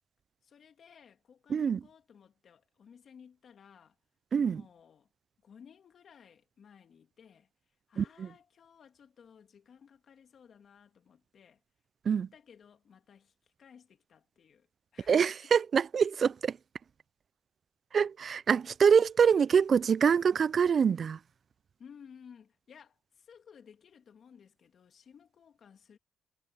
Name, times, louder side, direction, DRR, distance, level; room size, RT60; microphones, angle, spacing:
voice 1, 0.4-4.0 4.4-5.1 5.4-7.5 7.9-11.6 12.0-14.7 14.9-15.5 21.8-26.0, left 7 dB, 55° left, 2.7 m, -57 dB
voice 2, 4.3-4.6 8.0-8.3 12.1-12.3 15.1-16.6 17.9-21.2, right 7 dB, 50° right, 0.3 m, -25 dB
cardioid pair, 90°, 0 cm